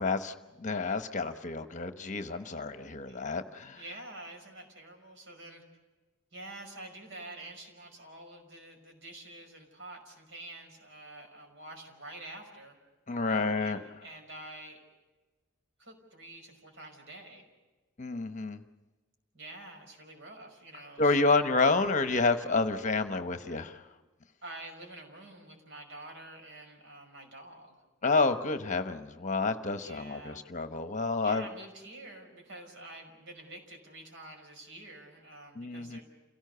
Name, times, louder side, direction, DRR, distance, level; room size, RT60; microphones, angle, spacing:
voice 1, 0.0-3.8 13.1-13.8 18.0-18.6 21.0-23.8 28.0-31.5 35.6-36.0, left 3 dB, 35° left, 9 dB, 1.0 m, -29 dB
voice 2, 3.7-5.6 6.3-12.8 13.3-14.8 15.8-17.5 19.3-21.5 24.4-27.8 29.8-30.4 31.2-36.0, right 2 dB, 60° right, 3 dB, 5.7 m, -47 dB
29.0 x 17.5 x 6.8 m, 1.2 s
head